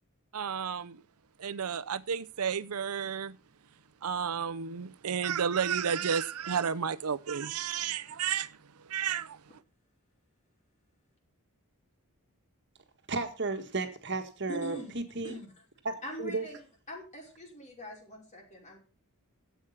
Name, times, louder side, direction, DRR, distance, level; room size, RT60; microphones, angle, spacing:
voice 1, 0.3-1.0 1.4-3.3 4.0-8.5 8.9-9.4, right 7 dB, 80° right, 0.6 m, -32 dB
voice 2, 13.1-15.4 15.8-16.5, right 3 dB, 55° right, 1.7 m, -34 dB
voice 3, 14.5-14.9 15.2-15.5 16.0-16.6 16.9-18.8, equal, 35° left, 5.3 m, -42 dB
12.5 x 8.2 x 5.7 m
head